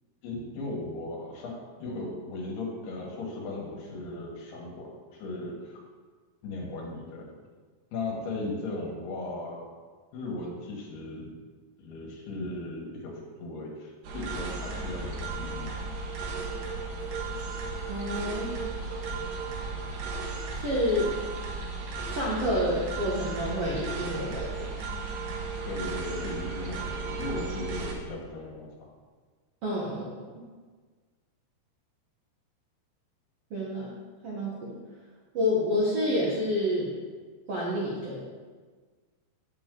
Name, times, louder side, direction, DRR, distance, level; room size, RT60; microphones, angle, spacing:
voice 1, 0.2-5.8 6.4-7.4 7.9-9.7 10.1-11.3 11.8-15.7 25.7-28.7, left 2 dB, 75° left, -1 dB, 3.5 m, -37 dB
sound 1, 14.0-27.9, right 3 dB, 65° right, 2.7 m, -35 dB
voice 2, 17.9-18.5 20.5-21.1 22.0-24.7 29.6-30.2 33.5-33.9 34.2-34.8 35.3-36.9 37.5-38.2, left 1 dB, 80° right, -5 dB, 1.3 m, -29 dB
8.7 x 8.5 x 3.8 m, 1.5 s
omnidirectional pair, 4.8 m